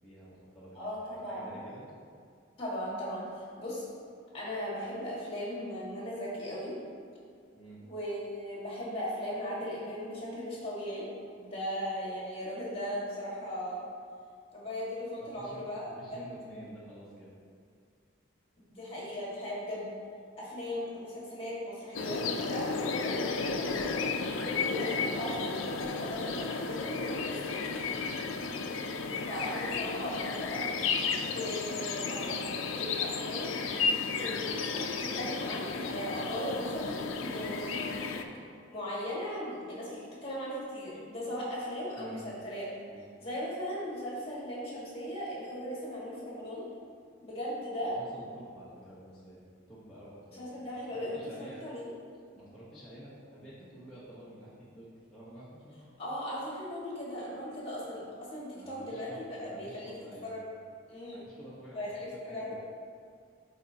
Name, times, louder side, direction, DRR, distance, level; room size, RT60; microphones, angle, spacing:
voice 1, 0.0-0.9 1.3-1.9 7.5-7.8 15.2-17.4 28.2-28.4 42.0-42.3 42.8-43.1 48.0-50.4 50.9-51.6 52.3-55.9 58.5-60.3 61.1-62.5, equal, 5° left, -12 dB, 1.1 m, -50 dB
voice 2, 0.7-1.6 2.6-3.9 4.3-6.8 7.9-11.1 11.4-13.8 14.5-15.8 18.7-19.9 20.4-24.1 24.4-27.5 29.3-30.8 31.3-32.4 32.8-33.5 34.2-37.9 38.7-42.7 43.2-46.6 47.2-48.0 50.3-51.9 56.0-59.9 60.2-60.4 60.9-61.3 61.7-62.5, equal, 25° left, -6 dB, 1.7 m, -38 dB
sound 1, 21.9-38.2, left 4 dB, 75° left, 0.5 m, -33 dB
12.5 x 4.1 x 2.9 m, 2.2 s
head